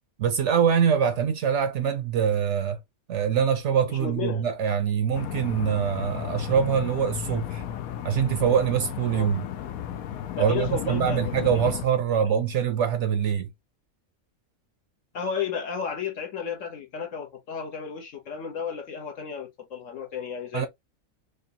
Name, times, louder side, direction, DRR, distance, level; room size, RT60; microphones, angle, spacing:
voice 1, 0.2-2.8 3.1-7.6 8.0-9.4 10.4-13.5 20.5-20.7, right 8 dB, 65° right, 0.8 m, -24 dB
voice 2, 3.9-4.5 9.1-9.3 10.4-11.7 15.1-20.7, left 7 dB, 60° left, 1.4 m, -33 dB
sound 1, 5.1-11.9, left 10 dB, 85° left, 1.1 m, -34 dB
5.1 x 2.3 x 2.6 m
omnidirectional pair, 1.5 m